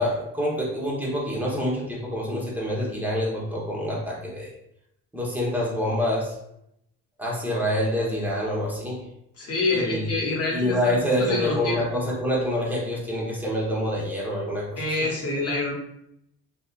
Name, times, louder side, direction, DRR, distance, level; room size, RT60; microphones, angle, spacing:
voice 1, 0.0-4.5 5.1-6.3 7.2-9.0 9.7-10.0 10.5-15.1, equal, 5° right, -5 dB, 1.1 m, -26 dB
voice 2, 9.4-11.8 14.8-15.7, left 2 dB, 45° left, -2 dB, 1.0 m, -27 dB
2.7 x 2.3 x 2.5 m, 0.77 s
supercardioid pair, 60°, 34 cm